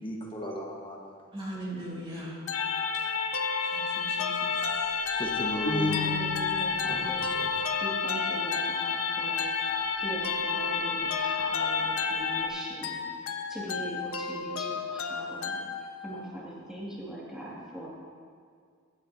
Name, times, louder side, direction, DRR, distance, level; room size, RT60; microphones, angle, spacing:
voice 1, 0.0-1.1 4.5-4.6 5.1-6.0 6.9-7.5, equal, 25° left, -1 dB, 1.2 m, -36 dB
voice 2, 1.3-2.4 3.6-4.9, right 1 dB, 25° right, -6 dB, 2.5 m, -40 dB
sound 1, 2.5-12.5, left 5 dB, 90° left, 1.0 m, -30 dB
sound 2, 2.5-16.3, left 5 dB, 75° left, 0.6 m, -36 dB
sound 3, 5.6-6.7, left 3 dB, 50° left, 2.7 m, -31 dB
voice 3, 5.8-9.5 10.0-13.0 13.5-15.6 16.0-17.9, right 1 dB, 5° right, -7 dB, 2.0 m, -40 dB
16.5 x 9.9 x 2.7 m, 2.1 s
head